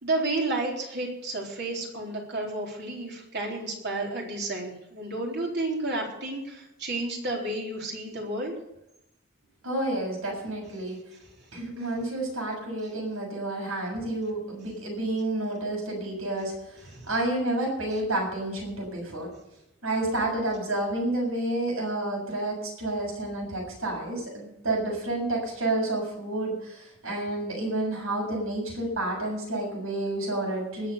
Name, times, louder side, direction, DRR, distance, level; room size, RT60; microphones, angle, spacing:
voice 1, 0.0-8.5 16.9-17.1, right 2 dB, 55° right, -1 dB, 3.9 m, -31 dB
voice 2, 9.6-11.0 11.5-19.3 19.8-30.9, right 1 dB, 85° right, -1 dB, 7.1 m, -30 dB
20.0 x 7.3 x 6.9 m, 0.85 s
head